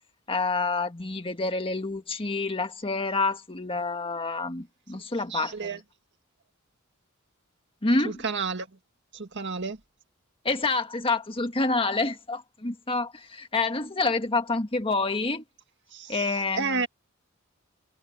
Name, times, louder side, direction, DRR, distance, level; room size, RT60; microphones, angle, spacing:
voice 1, 0.3-5.7 7.8-8.2 10.5-15.4 16.1-16.8, left 3 dB, 25° left, 1.7 m, -28 dB
voice 2, 5.3-5.8 8.0-8.7 9.1-9.8 15.9-16.2 16.6-16.9, right 4 dB, 55° right, 1.9 m, -31 dB
head